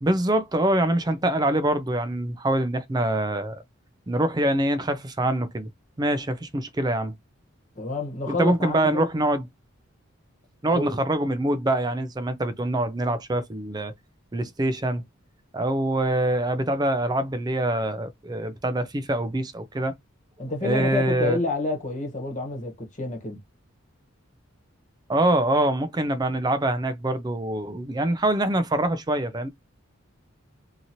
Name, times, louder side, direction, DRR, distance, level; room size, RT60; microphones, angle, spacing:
voice 1, 0.0-3.6 4.1-5.7 6.0-7.1 8.3-9.5 10.6-13.9 14.3-15.0 15.5-19.9 20.6-21.4 25.1-29.5, right 1 dB, 20° right, 0.4 m, -24 dB
voice 2, 7.7-9.1 10.7-11.0 20.4-23.4, left 2 dB, 35° left, 1.1 m, -29 dB
2.9 x 2.7 x 2.6 m
head